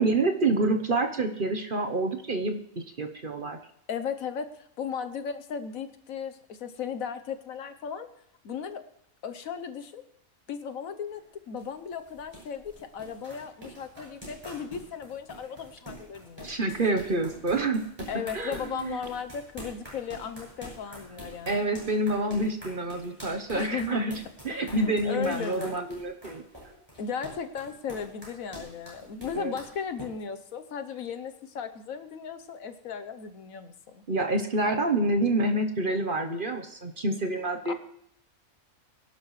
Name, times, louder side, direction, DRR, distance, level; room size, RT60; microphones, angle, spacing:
voice 1, 0.0-3.6 16.4-18.1 18.3-19.0 21.5-24.1 24.4-26.4 29.3-29.5 34.1-37.7, right 2 dB, 40° right, 5 dB, 1.0 m, -27 dB
voice 2, 3.9-8.1 8.4-8.8 9.2-10.0 10.5-16.5 18.1-21.6 23.5-24.0 24.5-25.8 27.0-34.0 37.6-37.7, left 7 dB, 70° left, 8 dB, 1.3 m, -36 dB
sound 1, 11.0-30.1, right 1 dB, 15° right, 7.0 m, -46 dB
23.0 x 11.5 x 3.2 m, 0.74 s
omnidirectional pair, 1.5 m